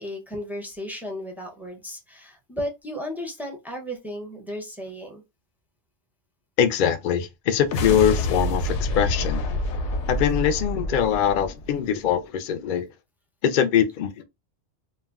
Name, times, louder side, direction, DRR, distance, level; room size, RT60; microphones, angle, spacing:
voice 1, 0.0-5.2, equal, 5° right, 0.4 m, -34 dB
voice 2, 6.6-9.5 10.1-12.9 13.4-14.2, left 9 dB, 60° left, 0.6 m, -22 dB
sound 1, 7.6-12.1, left 1 dB, 85° left, 0.9 m, -27 dB
2.4 x 2.1 x 3.4 m
omnidirectional pair, 1.2 m